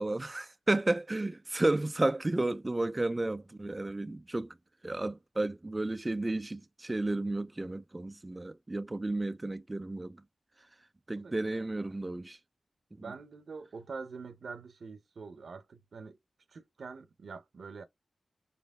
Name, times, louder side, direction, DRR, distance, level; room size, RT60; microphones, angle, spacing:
voice 1, 0.0-4.5 4.8-10.2 11.1-12.4, right 2 dB, 25° right, 0.3 m, -32 dB
voice 2, 11.2-12.0 13.0-16.2 16.5-17.8, right 4 dB, 75° right, 0.7 m, -45 dB
4.4 x 3.2 x 3.5 m
cardioid pair, 65°, 0 cm